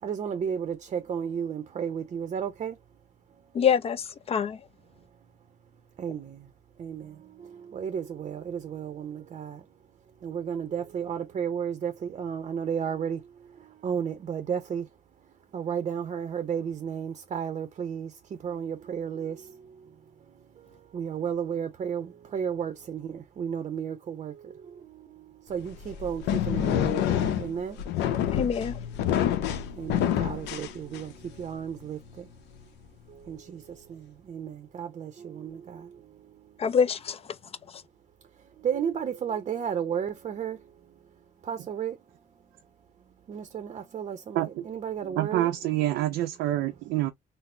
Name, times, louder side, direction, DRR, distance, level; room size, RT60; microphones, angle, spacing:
voice 1, 0.0-2.8 5.0-5.1 6.0-6.5 6.8-9.7 10.2-14.9 15.5-28.1 29.1-32.3 33.1-36.7 38.4-40.9 41.4-42.0 43.3-45.5, right 7 dB, 40° right, 0.6 m, -34 dB
voice 2, 3.5-4.6 28.3-28.8 36.6-37.2, left 7 dB, 35° left, 0.4 m, -25 dB
sound 1, 25.6-31.3, left 10 dB, 90° left, 0.6 m, -27 dB
voice 3, 45.0-47.1, right 14 dB, 90° right, 0.5 m, -27 dB
4.1 x 2.0 x 2.6 m
cardioid pair, 110°, 17 cm